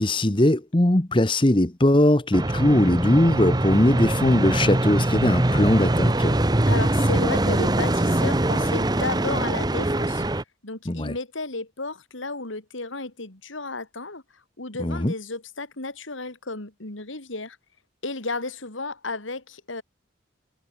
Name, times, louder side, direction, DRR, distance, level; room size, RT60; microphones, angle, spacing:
voice 1, 0.0-6.4 10.9-11.1 14.8-15.1, left 1 dB, 25° left, 1.1 m, -20 dB
sound 1, 2.3-10.4, right 1 dB, 20° right, 0.9 m, -22 dB
voice 2, 6.7-10.2 10.6-14.2 14.6-17.6 18.0-19.8, left 3 dB, 90° left, 3.3 m, -33 dB
head